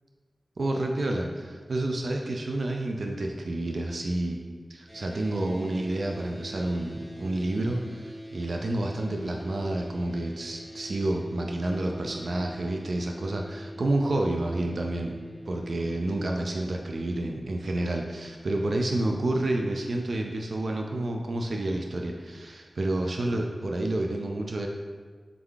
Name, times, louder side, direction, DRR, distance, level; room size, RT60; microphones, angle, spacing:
voice 1, 0.6-15.1 15.5-24.7, right 1 dB, 70° right, 1 dB, 0.3 m, -29 dB
sound 1, 4.9-16.4, equal, 35° right, 1.3 m, -44 dB
3.7 x 3.5 x 3.4 m, 1.5 s
wide cardioid pair, 90°, 0 cm